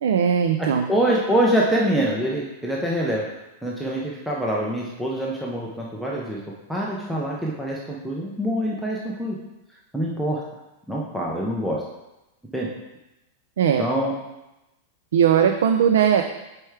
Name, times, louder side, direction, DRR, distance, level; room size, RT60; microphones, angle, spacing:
voice 1, 0.0-0.9 13.6-13.8 15.1-16.2, right 8 dB, 85° right, 6 dB, 0.4 m, -19 dB
voice 2, 0.9-3.2 3.6-6.4 6.7-9.4 9.9-10.4 10.9-11.8 12.5-12.7 13.8-14.1, right 1 dB, ahead, -4 dB, 0.4 m, -25 dB
4.7 x 4.5 x 4.6 m, 0.98 s
supercardioid pair, 180°, 0 cm